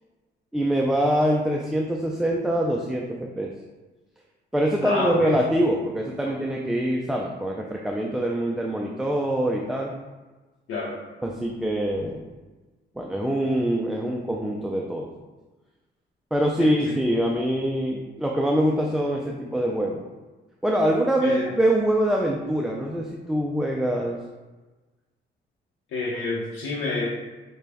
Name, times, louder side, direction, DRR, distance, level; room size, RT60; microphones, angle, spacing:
voice 1, 0.5-3.5 4.5-9.9 11.2-12.3 13.0-15.1 16.3-20.0 20.6-24.2, right 1 dB, ahead, -1 dB, 0.3 m, -24 dB
voice 2, 4.8-5.3 10.7-11.0 16.6-16.9 21.2-21.5 25.9-27.1, left 3 dB, 80° left, -6 dB, 0.8 m, -29 dB
4.8 x 2.2 x 3.4 m, 1.2 s
cardioid pair, 90°, 20 cm